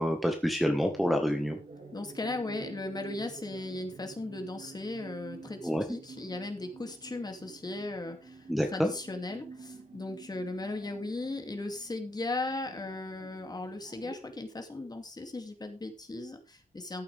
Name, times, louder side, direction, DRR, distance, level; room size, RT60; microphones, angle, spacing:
voice 1, 0.0-1.6 5.6-5.8 8.5-8.9, equal, ahead, 3 dB, 1.5 m, -27 dB
sound 1, 0.8-14.2, right 4 dB, 60° right, 3.4 m, -49 dB
voice 2, 1.9-8.5 8.7-17.0, left 2 dB, 30° left, 5 dB, 2.6 m, -37 dB
14.5 x 8.6 x 3.5 m, 0.32 s
wide cardioid pair, 130°, 14 cm